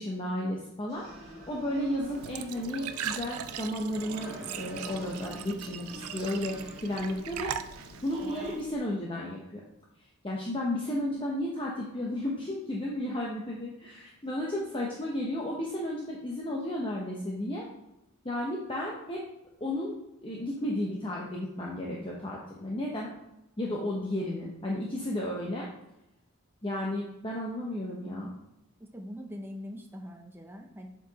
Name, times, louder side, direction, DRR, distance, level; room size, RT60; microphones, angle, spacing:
voice 1, 0.0-7.5 8.0-9.6 10.2-17.7 18.2-19.2 19.6-23.1 23.6-25.7 26.6-28.3, left 1 dB, 25° left, -3 dB, 0.8 m, -33 dB
sound 1, 0.9-8.5, equal, 30° right, 1.8 m, -46 dB
Glass / Trickle dribble / Fill (with liquid), 2.0-8.7, right 9 dB, 85° right, 0.4 m, -40 dB
voice 2, 28.0-28.3 28.8-30.9, equal, 10° right, 2 dB, 0.5 m, -43 dB
7.4 x 4.7 x 4.0 m, 0.87 s
head